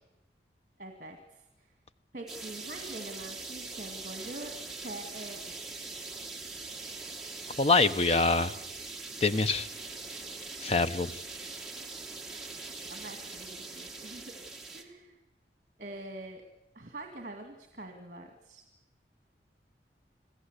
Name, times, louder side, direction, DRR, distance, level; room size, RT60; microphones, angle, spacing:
voice 1, 0.8-1.7 2.1-4.5 4.8-5.8 12.8-14.3 14.7-15.2 15.8-16.4 16.7-18.6, right 2 dB, 45° right, 4 dB, 2.2 m, -44 dB
sound 1, 2.3-14.8, right 3 dB, ahead, 1.9 m, -42 dB
voice 2, 7.6-8.5 9.2-9.7 10.6-11.2, left 3 dB, 35° left, 12 dB, 0.8 m, -25 dB
27.0 x 16.0 x 8.2 m, 0.93 s
head